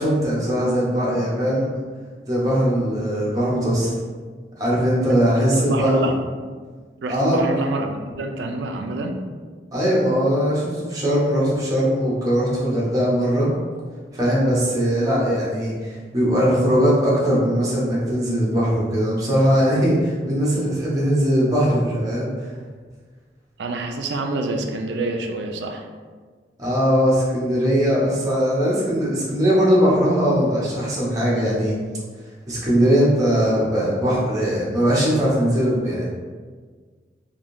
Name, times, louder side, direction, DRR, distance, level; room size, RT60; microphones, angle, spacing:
voice 1, 0.0-1.7 2.3-3.9 4.6-6.0 7.1-7.4 9.7-13.5 14.1-22.5 26.6-31.8 32.5-36.1, equal, 20° right, -7 dB, 0.8 m, -20 dB
voice 2, 5.1-6.2 7.0-9.2 23.6-25.9, right 2 dB, 75° right, 4 dB, 0.4 m, -27 dB
3.5 x 2.6 x 2.6 m, 1.5 s
head